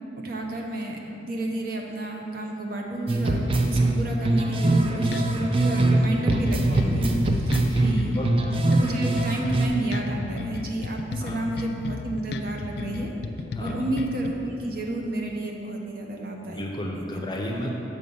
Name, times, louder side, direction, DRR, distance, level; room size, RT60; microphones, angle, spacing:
voice 1, 0.2-8.2 8.7-13.1 13.6-16.7 17.2-17.3, right 1 dB, 50° right, 1 dB, 0.8 m, -31 dB
sound 1, 3.1-6.0 6.3-9.7, right 2 dB, 30° right, 0.4 m, -22 dB
sound 2, 4.7-14.3, left 3 dB, 60° left, 0.3 m, -34 dB
voice 2, 7.6-8.4 11.2-11.4 13.5-13.8 16.5-17.7, equal, 25° left, 0 dB, 0.6 m, -33 dB
6.3 x 5.1 x 5.5 m, 2.9 s
head